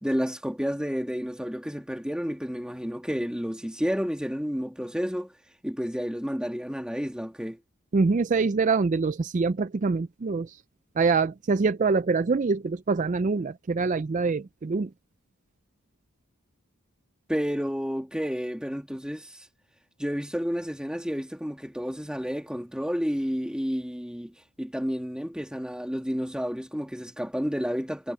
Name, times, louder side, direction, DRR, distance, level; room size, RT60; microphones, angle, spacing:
voice 1, 0.0-5.3 5.6-7.6 17.3-19.5 20.0-28.1, equal, 5° right, 2.0 m, -31 dB
voice 2, 7.9-10.6 11.0-14.9, right 4 dB, 35° right, 0.4 m, -25 dB
head